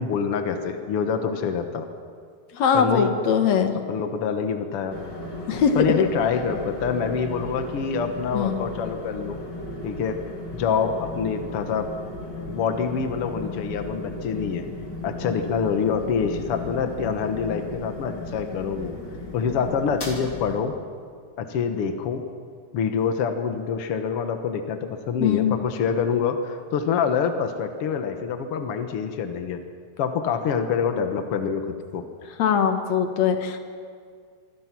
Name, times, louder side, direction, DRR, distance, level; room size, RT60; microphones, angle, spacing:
voice 1, 0.0-1.9 2.7-3.2 3.7-5.0 5.7-9.4 9.8-10.2 10.5-11.9 12.5-14.7 15.0-18.9 19.3-20.7 21.4-22.3 22.7-29.6 30.0-32.1, left 6 dB, 85° left, 7 dB, 1.2 m, -26 dB
voice 2, 2.5-3.8 5.5-5.8 8.3-8.7 12.4-12.5 25.2-25.6 32.4-33.6, left 7 dB, 55° left, 6 dB, 2.1 m, -21 dB
sound 1, 4.9-20.5, left 1 dB, 30° left, 2.9 m, -36 dB
25.5 x 24.0 x 6.1 m, 2.1 s
omnidirectional pair, 4.7 m